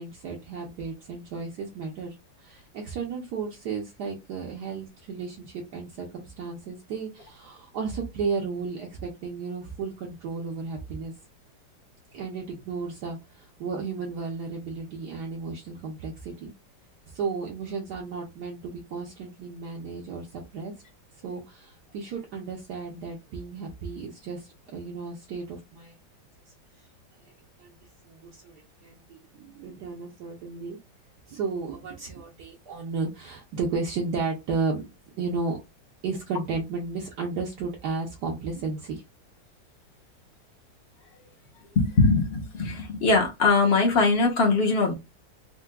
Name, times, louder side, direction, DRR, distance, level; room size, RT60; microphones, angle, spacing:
voice 1, 0.0-11.1 12.1-16.5 17.1-20.7 21.2-26.0 27.6-27.8 28.0-30.8 31.3-34.8 35.2-35.6 36.0-39.0, right 4 dB, 70° right, 1.2 m, -33 dB
voice 2, 41.8-44.9, left 3 dB, 50° left, 0.8 m, -21 dB
4.5 x 2.1 x 2.2 m
omnidirectional pair, 2.1 m